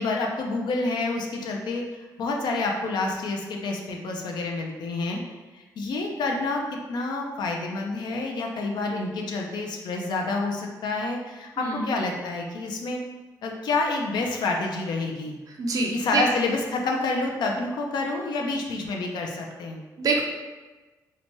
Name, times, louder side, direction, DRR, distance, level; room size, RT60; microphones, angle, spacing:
voice 1, 0.0-1.9 2.2-5.2 5.5-13.0 13.4-15.4 15.9-19.8, left 3 dB, 70° left, 1 dB, 0.4 m, -28 dB
voice 2, 11.6-11.9 15.6-16.2 20.0-20.2, right 3 dB, 50° right, 0 dB, 0.4 m, -25 dB
2.8 x 2.1 x 2.9 m, 1.2 s
cardioid pair, 110°, 8 cm